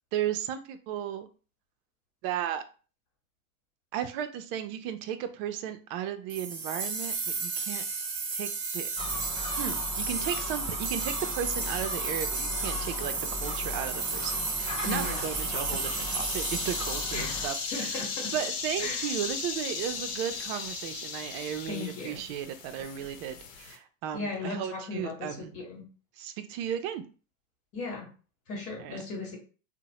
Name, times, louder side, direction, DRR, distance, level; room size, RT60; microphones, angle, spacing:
voice 1, 0.1-1.3 2.2-2.6 3.9-7.8 8.3-8.9 9.6-18.0 18.3-25.5 26.2-27.0 28.8-29.0, right 10 dB, 45° right, 9 dB, 0.5 m, -35 dB
sound 1, 6.3-18.3, right 4 dB, 30° right, 0.9 m, -33 dB
Gull seagull, 9.0-17.5, left 3 dB, 15° left, 0.3 m, -38 dB
sound 2, 12.8-23.8, left 5 dB, 70° left, 0.9 m, -37 dB
voice 2, 14.8-15.3 17.1-18.3 18.8-19.1 21.7-22.2 24.1-25.8 27.7-28.1 28.5-29.4, left 3 dB, 35° left, 0 dB, 1.3 m, -37 dB
2.8 x 2.1 x 2.9 m, 0.37 s
hypercardioid pair, 115°, 40 cm